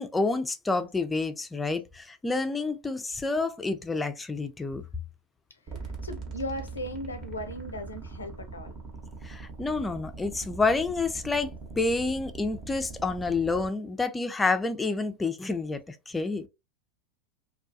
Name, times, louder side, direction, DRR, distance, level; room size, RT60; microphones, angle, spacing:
voice 1, 0.0-4.8 9.2-16.5, left 3 dB, 15° left, 0.4 m, -29 dB
sound 1, 5.7-13.7, right 4 dB, 40° right, 0.9 m, -41 dB
voice 2, 6.0-8.7, left 1 dB, 85° left, 0.5 m, -37 dB
2.3 x 2.3 x 2.6 m
hypercardioid pair, 90°, 0 cm